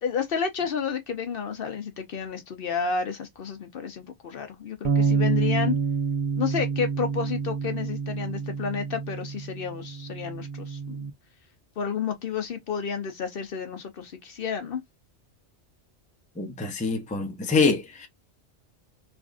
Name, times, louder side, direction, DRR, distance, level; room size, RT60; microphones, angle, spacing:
voice 1, 0.0-5.8 6.4-11.1 11.8-14.8, left 6 dB, 60° left, 0.8 m, -31 dB
sound 1, 4.8-11.1, right 5 dB, 60° right, 0.6 m, -28 dB
voice 2, 16.4-18.1, left 4 dB, 10° left, 0.5 m, -25 dB
3.4 x 2.4 x 2.4 m
omnidirectional pair, 1.1 m